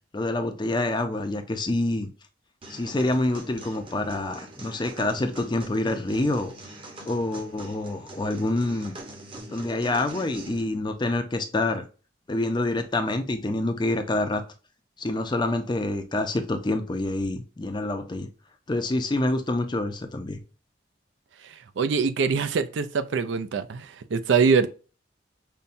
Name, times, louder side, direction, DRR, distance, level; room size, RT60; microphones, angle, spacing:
voice 1, 0.1-2.1 2.7-6.5 7.1-8.9 9.5-11.8 12.3-14.4 15.0-18.3 18.7-20.4, left 2 dB, 25° left, 0.5 m, -27 dB
sound 1, 2.6-10.6, right 2 dB, 30° right, 0.8 m, -43 dB
voice 2, 21.8-24.7, right 5 dB, 70° right, 0.4 m, -23 dB
5.5 x 2.2 x 2.5 m
head